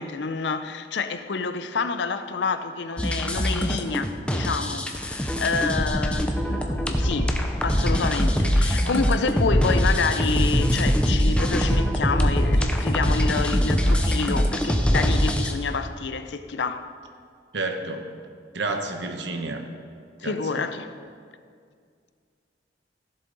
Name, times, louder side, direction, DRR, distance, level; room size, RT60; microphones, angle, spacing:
voice 1, 0.0-7.3 7.6-16.9 20.2-20.9, left 4 dB, 80° left, 0.6 m, -28 dB
sound 1, 3.0-15.5, equal, 5° left, 0.7 m, -23 dB
voice 2, 17.5-18.1 18.5-19.6 20.2-20.7, right 3 dB, 80° right, 1.1 m, -30 dB
16.0 x 7.4 x 4.0 m
head